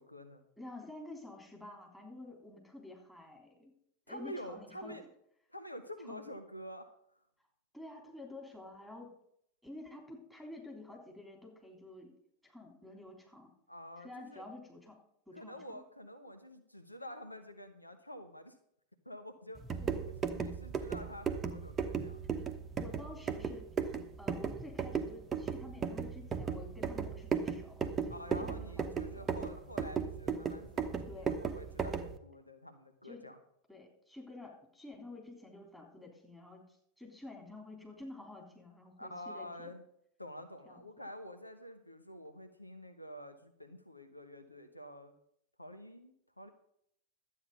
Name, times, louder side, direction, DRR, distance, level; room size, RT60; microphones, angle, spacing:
voice 1, 0.0-0.4 4.1-5.0 5.5-6.9 13.7-14.4 15.3-18.5 19.0-19.6 20.1-22.2 28.1-33.4 39.0-39.8 40.2-45.1 45.6-46.5, equal, 85° left, 8 dB, 1.0 m, -48 dB
voice 2, 0.6-3.7 4.1-5.0 6.1-6.2 7.7-9.2 9.6-12.1 12.4-13.5 14.0-15.0 15.3-15.8 19.8-20.0 22.8-23.7 24.2-29.3 31.1-31.3 33.0-33.3 33.7-39.7 40.7-41.1, left 2 dB, 5° left, 2 dB, 3.4 m, -50 dB
sound 1, 19.6-32.2, right 6 dB, 20° right, 1.0 m, -36 dB
12.0 x 8.6 x 5.4 m, 0.71 s
figure-of-eight pair, 90°, 0 cm